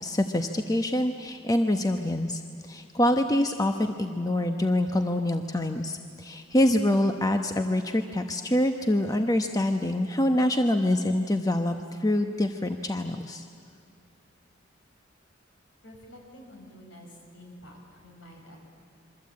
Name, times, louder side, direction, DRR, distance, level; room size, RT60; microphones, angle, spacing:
voice 1, 0.0-2.4 2.7-11.8 12.0-13.4, left 1 dB, 20° left, 6 dB, 1.0 m, -25 dB
voice 2, 15.8-17.1 17.3-18.6, equal, 70° left, 1 dB, 6.5 m, -48 dB
27.0 x 24.0 x 8.7 m, 2.6 s
head